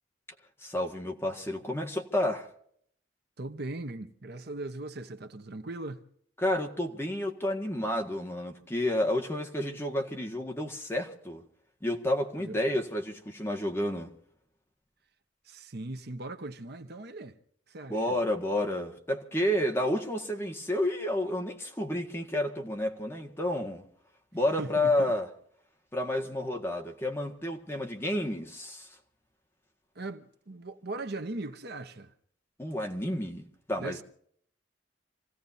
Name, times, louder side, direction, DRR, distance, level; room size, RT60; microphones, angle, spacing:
voice 1, 0.6-2.5 6.4-11.4 11.8-14.1 17.9-23.8 24.3-25.3 25.9-28.9 32.6-34.0, left 1 dB, 15° left, 1.7 m, -30 dB
voice 2, 3.4-6.0 12.4-12.7 15.4-17.4 17.7-18.2 24.6-25.1 29.9-32.1 33.7-34.0, right 2 dB, 60° right, 1.1 m, -39 dB
28.0 x 16.5 x 2.7 m
head